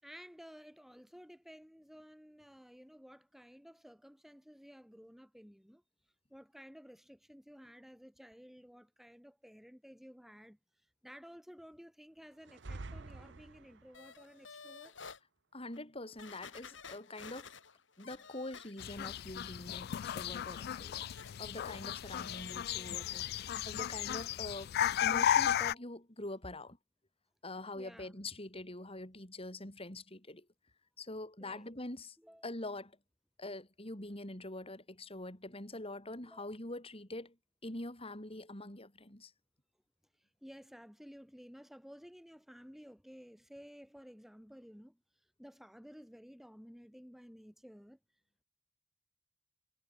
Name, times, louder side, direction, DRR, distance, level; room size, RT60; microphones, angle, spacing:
voice 1, 0.0-5.8 6.3-15.0 27.7-28.2 31.4-31.7 32.2-32.5 36.2-36.5 40.2-48.0, equal, ahead, 3.8 m, -55 dB
sound 1, 12.4-14.1, right 2 dB, 65° right, 0.9 m, -47 dB
sound 2, 13.9-15.2 15.7-15.8 16.2-19.2 19.5-22.6 22.9-23.2 23.6-23.7, left 5 dB, 75° left, 4.1 m, -53 dB
voice 2, 15.5-17.5 18.0-21.1 21.4-26.8 27.4-30.5 31.0-32.2 32.4-33.0 33.4-37.4 37.6-39.3, left 2 dB, 30° left, 5.6 m, -44 dB
sound 3, 18.8-25.7, left 10 dB, 55° left, 0.3 m, -34 dB
head